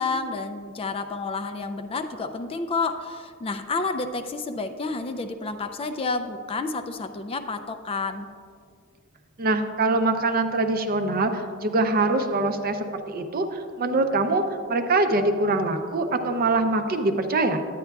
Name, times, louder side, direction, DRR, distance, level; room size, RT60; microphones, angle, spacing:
voice 1, 0.0-8.3, left 3 dB, 25° left, 8 dB, 0.3 m, -30 dB
voice 2, 9.4-14.4 14.7-17.6, right 2 dB, 45° right, 7 dB, 0.5 m, -23 dB
10.5 x 9.2 x 2.3 m, 2.2 s
head